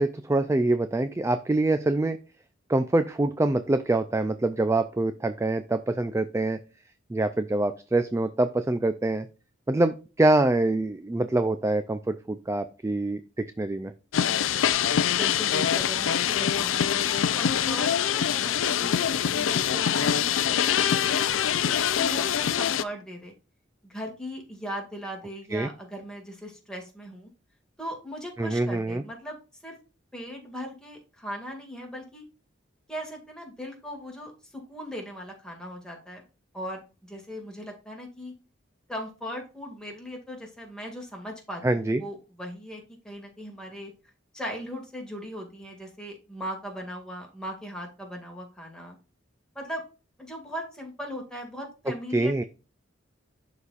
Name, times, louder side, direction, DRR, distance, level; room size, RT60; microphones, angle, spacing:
voice 1, 0.0-2.2 2.7-6.6 7.1-9.3 9.7-13.9 25.5-25.7 28.4-29.0 41.6-42.0 52.1-52.4, right 2 dB, 15° right, 10 dB, 0.3 m, -25 dB
sound 1, 14.1-22.8, left 9 dB, 85° left, 0.4 m, -24 dB
voice 2, 15.0-23.3 23.8-27.3 27.8-29.4 29.6-29.8 30.1-32.2 32.9-36.2 36.5-38.3 38.9-43.9 44.3-49.0 49.6-49.8 50.2-52.4, equal, 5° left, 0 dB, 2.0 m, -39 dB
11.5 x 4.1 x 2.4 m, 0.33 s
head